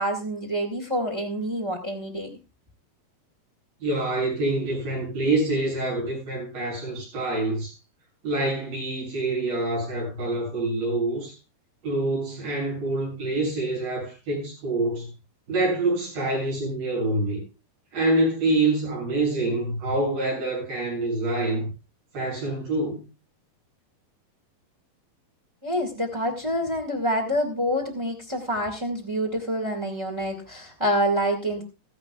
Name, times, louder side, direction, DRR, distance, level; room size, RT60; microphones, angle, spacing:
voice 1, 0.0-2.3 25.6-31.6, equal, 15° right, 1.0 m, -27 dB
voice 2, 3.8-7.7 8.2-11.3 11.8-15.1 15.5-17.4 17.9-21.7 22.1-23.1, right 2 dB, 80° right, 9.3 m, -26 dB
16.5 x 14.5 x 2.4 m
omnidirectional pair, 4.1 m